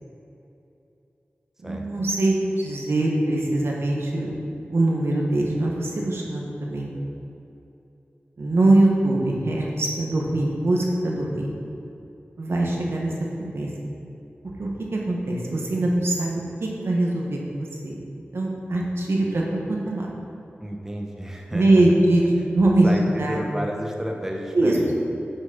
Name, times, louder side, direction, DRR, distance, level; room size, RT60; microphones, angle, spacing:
voice 1, 1.6-4.3 4.7-6.9 8.4-11.5 12.4-13.1 13.5-13.7 14.6-18.0 18.3-20.1 21.5-22.2 22.5-22.9 23.2-23.4 24.5-24.8, right 2 dB, 75° right, -1 dB, 1.3 m, -22 dB
voice 2, 20.6-22.0 22.8-25.0, equal, 10° right, 0 dB, 0.8 m, -31 dB
9.1 x 6.2 x 4.0 m, 2.9 s
wide cardioid pair, 80°, 4 cm